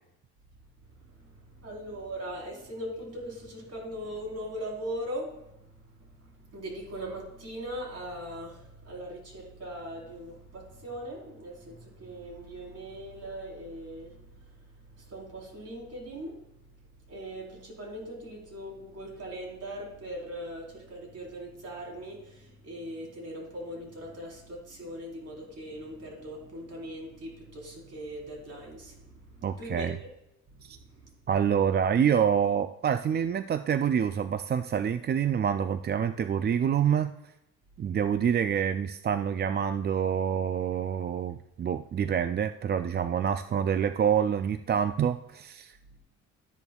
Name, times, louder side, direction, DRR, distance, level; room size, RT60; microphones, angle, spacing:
voice 1, 0.8-30.1 30.5-31.2 45.9-46.0, equal, 55° right, -1 dB, 4.0 m, -40 dB
voice 2, 29.4-30.0 30.6-30.8 31.3-37.1 37.8-46.0, right 8 dB, 35° right, 11 dB, 0.4 m, -27 dB
12.5 x 10.5 x 2.3 m, 0.86 s
cardioid pair, 90°, 30 cm